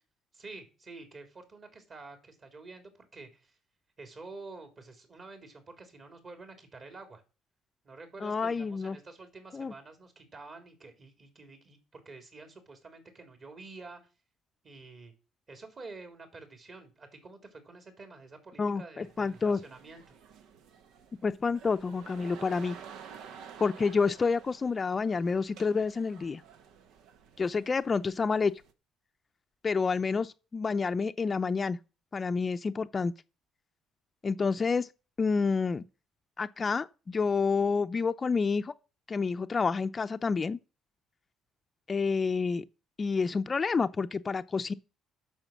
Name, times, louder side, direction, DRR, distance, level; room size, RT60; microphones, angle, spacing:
voice 1, 0.3-3.6 4.0-7.2 7.8-14.0 14.6-15.1 15.5-20.1, right 3 dB, 40° right, 3.8 m, -49 dB
voice 2, 8.2-9.0 9.5-9.7 18.6-19.6 21.2-22.8 23.6-26.4 27.4-28.5 29.6-31.8 32.1-33.1 34.2-34.9 35.2-35.8 36.4-38.7 39.1-40.6 41.9-42.6 43.0-44.7, left 5 dB, 35° left, 0.6 m, -29 dB
sound 1, 19.0-28.7, right 7 dB, 80° right, 1.2 m, -51 dB
9.0 x 6.4 x 7.3 m
cardioid pair, 85°, 0 cm